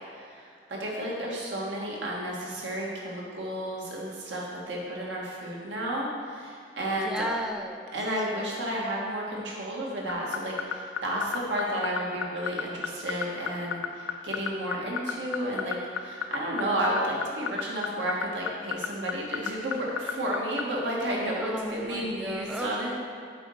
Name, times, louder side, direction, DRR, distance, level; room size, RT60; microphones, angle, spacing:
voice 1, 0.7-7.3 7.9-22.9, right 1 dB, 80° right, -3 dB, 1.8 m, -32 dB
voice 2, 7.0-7.9 21.4-22.7, equal, 5° right, 5 dB, 0.4 m, -35 dB
sound 1, 10.1-20.6, left 8 dB, 90° left, 0.5 m, -29 dB
8.4 x 4.2 x 6.4 m, 2.2 s
head